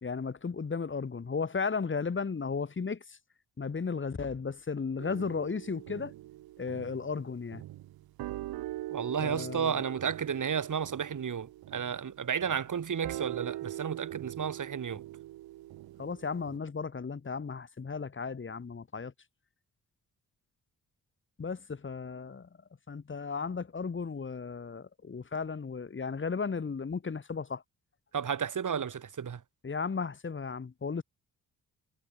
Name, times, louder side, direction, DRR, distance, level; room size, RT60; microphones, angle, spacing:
voice 1, 0.0-3.2 3.6-6.1 6.6-7.6 9.2-9.8 16.0-19.1 21.4-22.5 22.9-27.6 29.6-31.0, left 5 dB, 35° left, 1.8 m, -35 dB
sound 1, 5.0-16.6, right 15 dB, 85° right, 1.2 m, -42 dB
voice 2, 8.9-15.0 28.1-29.4, right 7 dB, 55° right, 4.1 m, -32 dB
cardioid pair, 60°, 36 cm